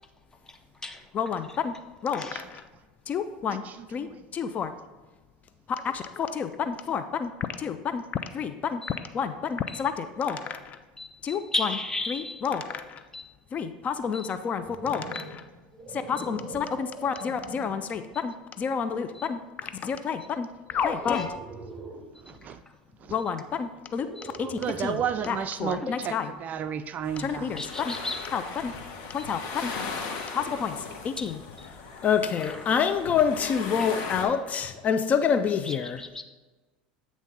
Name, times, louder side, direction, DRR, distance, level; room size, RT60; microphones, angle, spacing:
voice 1, 0.4-1.1 2.1-2.4 8.8-9.0 9.7-9.8 11.0-12.5 13.1-13.3 14.1-14.3 15.1-15.2 16.2-16.3 19.1-19.3 21.1-21.3 24.2-24.3 25.8-25.9 27.6-28.3 29.7-30.4 31.2-31.3 31.9-32.0 32.4-32.7 33.8-33.9 35.6-36.2, left 2 dB, 10° left, 5 dB, 0.7 m, -36 dB
voice 2, 1.1-1.7 2.0-2.6 3.1-3.6 3.9-4.1 4.3-4.7 5.8-7.3 7.6-8.0 8.3-8.8 9.1-10.8 11.2-11.7 12.1-13.0 13.5-15.4 15.9-21.4 23.1-25.0 25.3-26.3 27.2-27.9 28.3-28.7 29.1-29.7 30.3-30.8 31.0-31.4 32.0-36.0, left 7 dB, 35° left, 10 dB, 0.4 m, -29 dB
voice 3, 2.2-2.5 3.5-4.2 22.2-22.6 23.0-23.2 24.4-27.7, right 8 dB, 40° right, 12 dB, 0.3 m, -33 dB
sound 1, 14.3-18.0 18.6-18.9 20.7-22.2 23.9-25.3, right 2 dB, 20° right, 1.1 m, -43 dB
sound 2, 27.0-34.2, left 5 dB, 60° left, 1.1 m, -38 dB
8.8 x 3.1 x 5.1 m, 1.3 s
hypercardioid pair, 95°, 4 cm